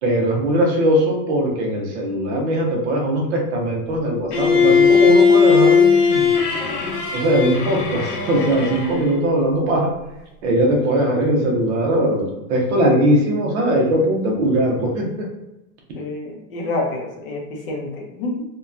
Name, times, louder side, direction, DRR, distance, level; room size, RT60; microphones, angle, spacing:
voice 1, 0.0-6.3 7.1-9.9 10.4-15.3, right 1 dB, 50° right, 0 dB, 0.7 m, -20 dB
Bowed string instrument, 4.3-9.2, left 6 dB, 90° left, 0.7 m, -17 dB
voice 2, 15.9-18.5, left 2 dB, 40° left, 0 dB, 0.5 m, -28 dB
2.8 x 2.2 x 2.4 m, 0.94 s
supercardioid pair, 165°, 45 cm